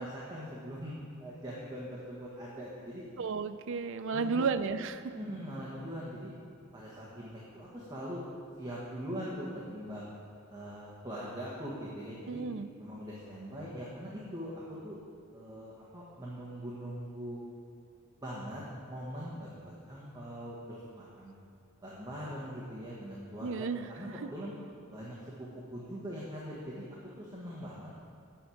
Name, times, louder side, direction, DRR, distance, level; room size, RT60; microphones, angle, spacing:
voice 1, 0.0-3.1 4.1-4.4 5.1-6.3 6.7-8.2 8.6-10.1 10.5-12.4 12.8-15.0 15.3-17.4 18.2-18.6 18.9-21.3 21.8-24.5 24.9-27.9, equal, 20° right, -6 dB, 1.3 m, -42 dB
voice 2, 3.2-5.1 12.3-12.7 23.4-23.9, right 5 dB, 60° right, 11 dB, 0.4 m, -33 dB
8.9 x 6.2 x 7.1 m, 2.3 s
head